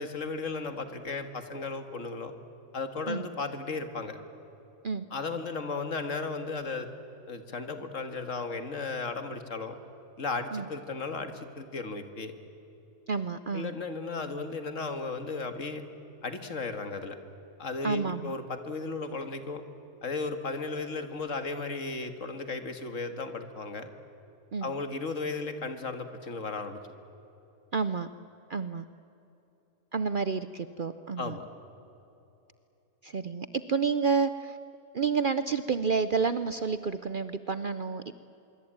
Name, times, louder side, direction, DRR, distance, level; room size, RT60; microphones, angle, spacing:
voice 1, 0.0-2.3 2.7-4.2 5.1-6.9 7.3-9.8 10.2-12.3 13.5-15.8 16.2-17.2 17.6-19.6 20.0-23.9 24.6-26.8 31.2-31.4, left 4 dB, 60° left, 8 dB, 2.0 m, -35 dB
voice 2, 13.1-13.7 17.8-18.3 24.5-24.7 27.7-28.1 28.5-28.8 29.9-31.4 33.0-34.6 34.9-38.1, right 5 dB, 50° right, 12 dB, 0.7 m, -29 dB
25.0 x 23.5 x 8.8 m, 2.9 s
omnidirectional pair, 1.5 m